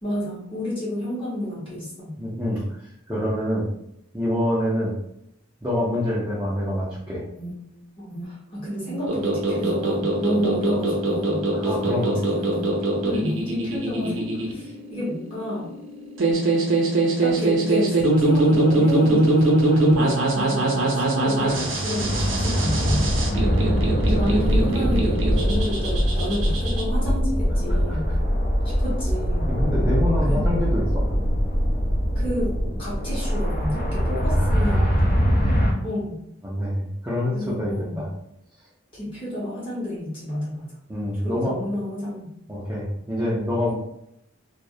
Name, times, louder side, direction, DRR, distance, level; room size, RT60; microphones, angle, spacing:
voice 1, 0.0-2.1 8.0-12.7 13.0-15.7 17.2-23.1 24.0-28.0 28.6-29.5 30.3-30.4 32.1-32.5 32.8-34.9 35.8-36.1 37.3-38.0 38.9-40.7 41.1-42.3, left 1 dB, 25° left, -8 dB, 0.8 m, -30 dB
voice 2, 2.2-2.6 3.1-3.7 4.1-4.9 5.6-7.2 11.5-12.2 27.7-28.2 29.5-31.1 34.3-34.9 36.4-38.1 40.9-41.6 42.5-43.7, left 1 dB, 10° right, -8 dB, 0.4 m, -26 dB
Alarm, 7.3-14.3, right 1 dB, 75° left, 0.8 m, -40 dB
sound 1, 9.1-26.8, right 2 dB, 70° right, 0.5 m, -22 dB
sound 2, 21.4-35.7, equal, 50° left, 0.5 m, -22 dB
2.3 x 2.0 x 2.6 m, 0.78 s
head